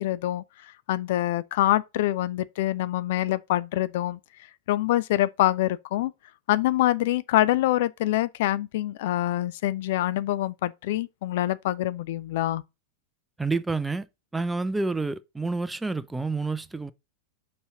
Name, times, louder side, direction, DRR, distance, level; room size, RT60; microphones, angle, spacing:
voice 1, 0.0-0.4 0.9-4.2 4.7-6.1 6.5-12.6, left 14 dB, 50° left, 0.5 m, -25 dB
voice 2, 13.4-14.0 14.3-16.9, right 3 dB, 5° right, 0.5 m, -28 dB
5.5 x 4.3 x 6.1 m
figure-of-eight pair, 90°, 0 cm